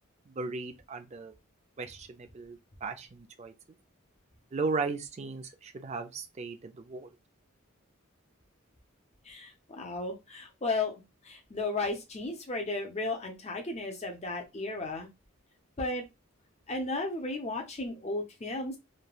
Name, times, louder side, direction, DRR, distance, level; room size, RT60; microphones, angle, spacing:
voice 1, 0.3-1.3 1.8-3.5 4.5-7.1, right 4 dB, 30° right, 0.3 m, -36 dB
voice 2, 9.2-15.1 15.8-16.0 16.7-18.8, left 2 dB, 30° left, 0.6 m, -34 dB
3.2 x 2.2 x 2.2 m
head